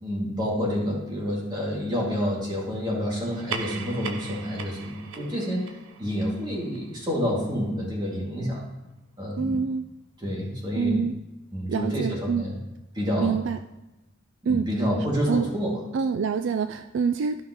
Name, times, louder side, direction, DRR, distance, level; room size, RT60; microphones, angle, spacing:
voice 1, 0.0-5.7 6.0-8.7 9.2-9.6 10.2-11.0 11.5-12.6 12.9-13.4 14.4-15.8, equal, 20° right, -3 dB, 2.3 m, -28 dB
sound 1, 3.2-8.1, right 5 dB, 80° right, 0.7 m, -40 dB
voice 2, 9.4-9.9 10.8-11.2 11.7-12.5 13.2-13.6 14.5-14.7 15.3-15.5 15.9-17.4, right 6 dB, 65° right, 9 dB, 0.3 m, -26 dB
13.0 x 5.6 x 3.0 m, 1.0 s
head